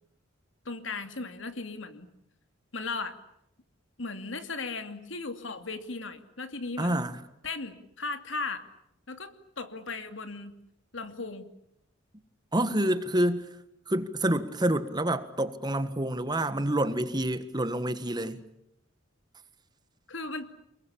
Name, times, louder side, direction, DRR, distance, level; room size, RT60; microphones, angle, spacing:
voice 1, 0.6-2.1 2.7-3.2 4.0-7.0 7.4-8.6 9.1-10.6 10.9-11.4 20.1-20.5, left 3 dB, 70° left, 8 dB, 2.7 m, -37 dB
voice 2, 6.8-7.2 12.5-13.5 13.9-18.4, right 1 dB, 20° right, 11 dB, 1.5 m, -28 dB
29.0 x 21.5 x 8.7 m, 0.79 s
head